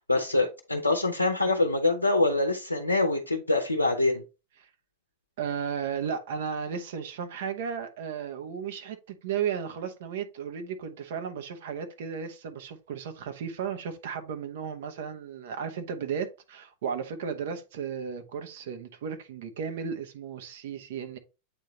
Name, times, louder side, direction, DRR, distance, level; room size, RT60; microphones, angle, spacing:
voice 1, 0.0-4.2, left 2 dB, 80° left, 0.7 m, -25 dB
voice 2, 5.4-21.2, right 7 dB, 55° right, 1.0 m, -34 dB
8.2 x 3.8 x 3.1 m
figure-of-eight pair, 90°, 0 cm